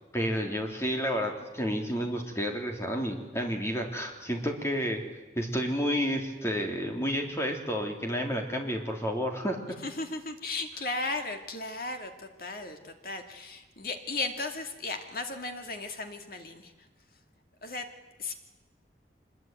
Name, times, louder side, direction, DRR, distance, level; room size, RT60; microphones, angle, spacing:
voice 1, 0.1-5.1 5.3-9.6, equal, 15° left, 2 dB, 3.3 m, -30 dB
voice 2, 9.8-16.9 17.6-17.9 18.2-18.3, left 3 dB, 50° left, 5 dB, 2.4 m, -36 dB
25.0 x 21.5 x 9.1 m, 1.2 s
head